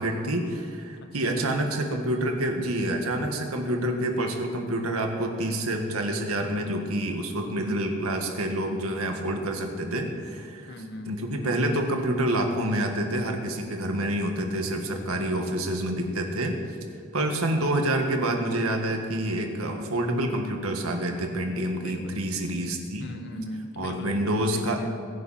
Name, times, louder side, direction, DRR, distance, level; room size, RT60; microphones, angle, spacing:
voice 1, 0.0-10.7 11.1-16.6 17.1-23.1 23.8-24.8, right 1 dB, 80° right, 3 dB, 1.9 m, -27 dB
voice 2, 1.0-1.4 7.5-8.0 10.7-11.3 15.1-15.7 21.7-22.4 23.0-25.0, left 1 dB, 55° left, 6 dB, 1.3 m, -40 dB
22.0 x 9.7 x 4.4 m, 2.2 s
head